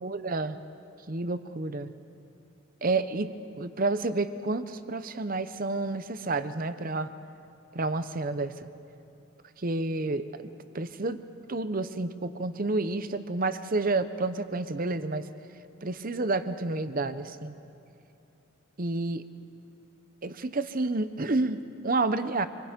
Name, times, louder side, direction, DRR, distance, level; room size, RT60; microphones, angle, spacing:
voice 1, 0.0-0.6 1.1-1.9 2.8-3.3 3.6-7.1 7.7-8.7 9.6-10.3 10.7-11.2 11.5-15.3 15.8-17.5 18.8-19.2 20.2-22.5, right 3 dB, 45° right, 11 dB, 0.8 m, -30 dB
27.0 x 22.5 x 5.2 m, 2.8 s
head